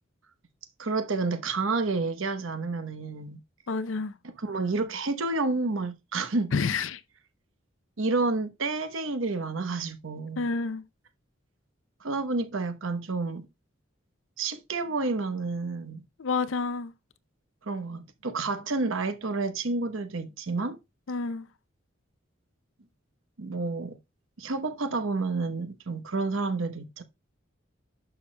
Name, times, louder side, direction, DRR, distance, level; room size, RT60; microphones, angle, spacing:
voice 1, 0.8-3.4 4.2-6.5 8.0-10.5 12.0-13.5 14.4-16.0 17.6-20.8 23.4-24.0 24.4-27.0, right 3 dB, 80° right, 1.0 m, -30 dB
voice 2, 3.7-4.1 6.5-7.0 10.4-10.8 16.2-16.9 21.1-21.5, left 4 dB, 75° left, 0.6 m, -29 dB
11.0 x 6.0 x 2.2 m
head